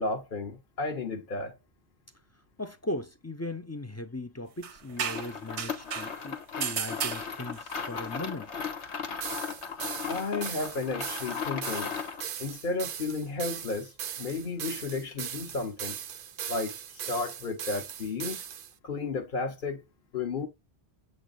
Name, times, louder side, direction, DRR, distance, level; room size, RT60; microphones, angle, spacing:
voice 1, 0.0-1.5 10.1-11.9 12.4-13.9 14.2-16.0 16.5-16.7 17.1-18.4 18.8-19.8 20.1-20.5, left 3 dB, 50° left, 1.1 m, -33 dB
voice 2, 2.6-8.5, left 1 dB, 25° left, 0.3 m, -38 dB
sound 1, 4.6-6.2 6.6-7.8, right 8 dB, 85° right, 1.1 m, -34 dB
sound 2, 5.0-12.3, left 6 dB, 85° left, 1.5 m, -36 dB
sound 3, 9.2-18.7, right 9 dB, 60° right, 0.7 m, -39 dB
7.9 x 3.0 x 4.0 m
omnidirectional pair, 1.1 m